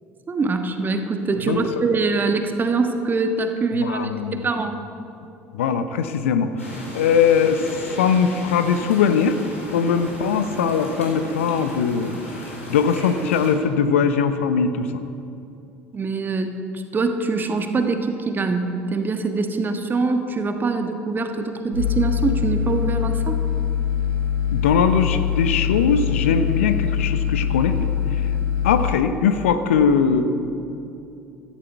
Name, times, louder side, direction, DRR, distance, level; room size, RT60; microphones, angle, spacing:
voice 1, 0.3-4.8 15.9-23.4, right 3 dB, 30° right, 6 dB, 1.4 m, -24 dB
voice 2, 3.7-4.5 5.5-6.5 6.9-9.4 9.7-14.9 24.5-28.2 28.6-30.2, left 6 dB, 70° left, 10 dB, 0.8 m, -20 dB
sound 1, 6.6-13.5, equal, 90° left, 3.5 m, -36 dB
sound 2, 21.7-28.9, left 8 dB, 75° right, 2.5 m, -23 dB
17.0 x 14.0 x 4.6 m, 2.7 s
figure-of-eight pair, 60°, 7 cm